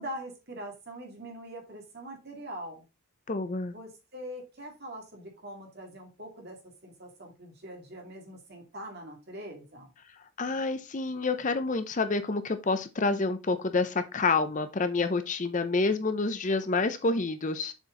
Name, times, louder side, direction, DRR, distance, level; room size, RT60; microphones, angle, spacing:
voice 1, 0.0-2.8 3.7-9.9, right 1 dB, 45° right, 1 dB, 2.3 m, -43 dB
voice 2, 3.3-3.7 10.4-17.7, left 3 dB, 35° left, 10 dB, 0.6 m, -28 dB
7.1 x 4.4 x 3.7 m, 0.27 s
head